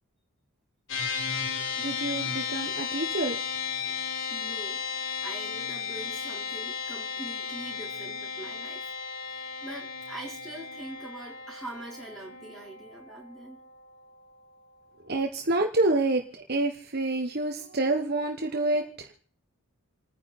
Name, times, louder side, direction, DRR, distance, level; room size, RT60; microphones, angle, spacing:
sound 1, 0.9-14.4, left 6 dB, 60° left, 4.3 m, -35 dB
voice 1, 1.8-3.4 15.0-19.1, right 2 dB, 45° right, 3 dB, 1.4 m, -28 dB
voice 2, 4.3-8.9 9.6-13.6, right 2 dB, ahead, -2 dB, 4.1 m, -43 dB
29.0 x 10.0 x 4.3 m, 0.43 s
head